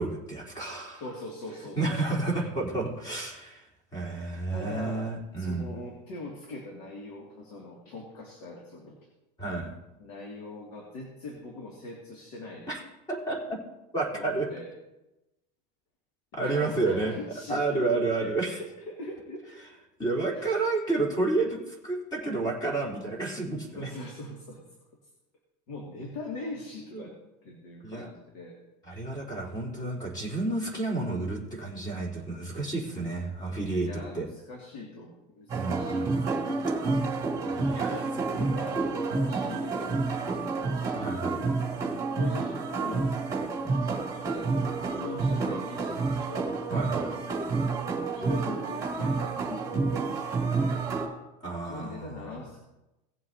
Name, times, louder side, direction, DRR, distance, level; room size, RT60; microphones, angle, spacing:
voice 1, 0.0-1.0 1.8-5.8 9.4-9.7 12.7-13.6 13.9-14.5 16.3-17.1 17.5-18.6 20.0-23.9 26.9-27.1 27.8-28.1 28.8-34.3 35.5-36.1 36.9-37.3 37.5-38.0 40.9-41.4 46.7-47.1 51.4-52.4, right 3 dB, 20° left, -3 dB, 3.6 m, -31 dB
voice 2, 1.0-2.0 4.5-5.1 5.4-9.0 10.0-12.7 14.1-14.7 16.3-19.5 20.3-20.6 23.7-24.6 25.7-27.1 27.4-28.6 33.8-36.1 37.9-40.8 42.1-43.1 44.3-46.5 48.1-50.1 51.6-52.6, left 2 dB, 70° left, -1 dB, 2.4 m, -41 dB
sound 1, 35.5-51.1, right 3 dB, 15° right, 2.3 m, -29 dB
18.0 x 7.7 x 2.8 m, 0.98 s
supercardioid pair, 155°, 21 cm